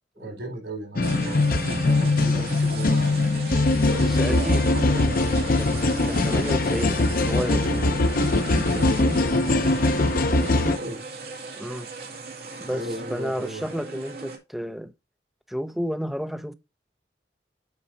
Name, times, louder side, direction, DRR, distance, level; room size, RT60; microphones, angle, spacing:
voice 1, 0.2-3.3 3.8-4.8 5.3-5.5 7.3-8.0 8.5-9.8 10.3-11.0 11.5-11.6 12.6-13.7, right 1 dB, 85° right, 5.1 m, -36 dB
sound 1, 1.0-10.8, left 2 dB, 55° left, 0.7 m, -22 dB
sound 2, 1.0-14.4, right 3 dB, 60° right, 2.6 m, -37 dB
voice 2, 3.9-7.8 11.6-11.9 12.6-14.9 15.5-16.5, equal, ahead, 0.6 m, -32 dB
8.4 x 4.9 x 4.0 m
head